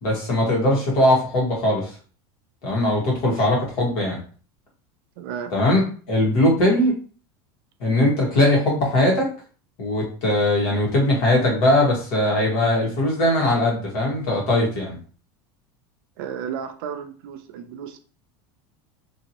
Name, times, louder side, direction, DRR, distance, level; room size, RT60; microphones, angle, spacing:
voice 1, 0.0-2.0 2.6-4.2 5.5-6.9 7.8-9.3 9.8-14.9, left 1 dB, 55° left, -2 dB, 1.6 m, -20 dB
voice 2, 5.2-5.5 16.2-18.0, right 8 dB, 70° right, 7 dB, 0.5 m, -33 dB
2.9 x 2.8 x 2.9 m, 0.40 s
supercardioid pair, 165°, 12 cm